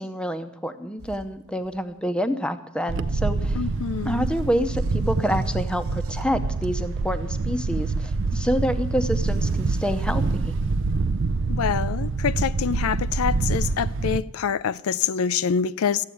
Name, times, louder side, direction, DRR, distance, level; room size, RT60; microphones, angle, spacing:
voice 1, 0.0-3.6 4.0-10.5, equal, 5° left, 0.7 m, -27 dB
sound 1, 1.0-2.0 4.0-7.0 9.1-10.1, equal, 75° right, 1.1 m, -43 dB
Wind, 2.9-14.2, right 3 dB, 55° right, 0.5 m, -26 dB
voice 2, 3.6-4.3 11.5-16.0, left 7 dB, 75° left, 0.4 m, -26 dB
14.5 x 8.2 x 9.9 m
head